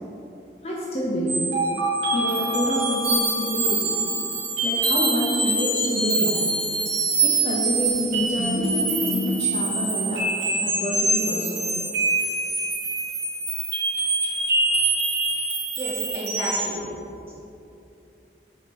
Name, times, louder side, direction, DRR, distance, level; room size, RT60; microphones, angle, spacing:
voice 1, 0.6-1.4 2.1-4.0 4.6-6.4 7.2-10.2 10.6-11.7, equal, 35° left, -5 dB, 0.7 m, -27 dB
sound 1, 1.3-16.8, right 2 dB, 70° right, 0.9 m, -24 dB
voice 2, 15.8-16.7 17.3-17.4, right 1 dB, 15° right, -8 dB, 1.4 m, -31 dB
4.7 x 4.2 x 5.3 m, 2.8 s
head